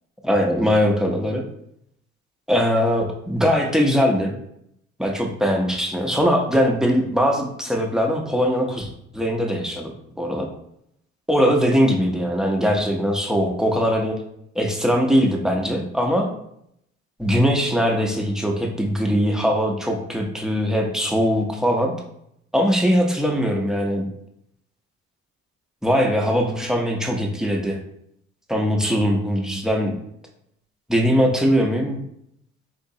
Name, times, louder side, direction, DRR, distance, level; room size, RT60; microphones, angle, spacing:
voice 1, 0.2-1.4 2.5-4.3 5.0-9.9 10.2-10.5 11.3-14.2 14.5-16.3 17.2-21.9 22.5-24.1 25.8-27.8 28.5-29.9 30.9-32.0, equal, ahead, 1 dB, 0.6 m, -21 dB
3.7 x 2.9 x 2.7 m, 0.75 s
cardioid pair, 90°, 30 cm